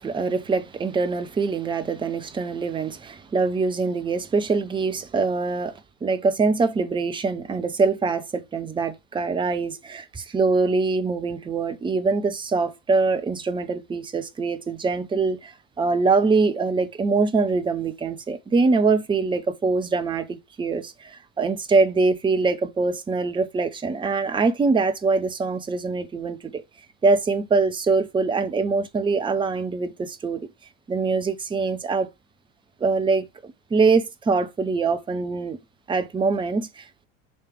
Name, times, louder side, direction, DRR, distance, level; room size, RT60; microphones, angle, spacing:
voice 1, 0.0-26.6 27.0-30.5 30.9-32.1 32.8-35.6 35.9-37.0, right 4 dB, 10° right, 0.8 m, -23 dB
7.1 x 3.3 x 4.7 m
figure-of-eight pair, 75°, 42 cm